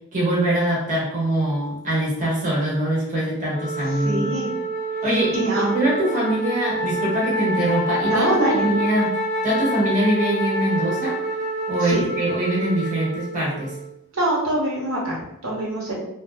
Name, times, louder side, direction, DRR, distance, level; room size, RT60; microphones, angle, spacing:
voice 1, 0.1-4.2 5.0-9.1 9.4-11.2 11.7-13.8, right 1 dB, 35° right, -6 dB, 0.8 m, -23 dB
Wind instrument woodwind instrument, 3.5-13.9, right 1 dB, 30° left, 0.4 m, -27 dB
voice 2, 4.0-4.5 5.3-5.7 8.0-8.6 11.8-12.0 14.1-15.9, right 1 dB, 75° right, -4 dB, 0.9 m, -24 dB
2.5 x 2.2 x 3.1 m, 0.83 s
head